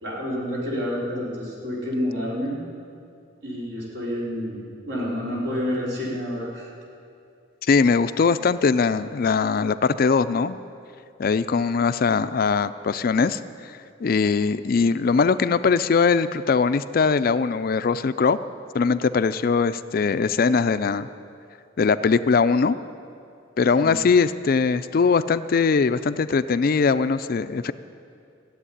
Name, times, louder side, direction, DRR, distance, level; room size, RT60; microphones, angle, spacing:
voice 1, 0.0-2.6 3.4-6.7 23.7-24.0, equal, 65° right, -5 dB, 4.1 m, -29 dB
voice 2, 7.6-10.6 11.2-13.4 14.0-18.4 18.7-21.1 21.8-22.8 23.6-27.7, left 5 dB, 50° left, 13 dB, 0.4 m, -21 dB
15.0 x 8.0 x 9.8 m, 2.4 s
head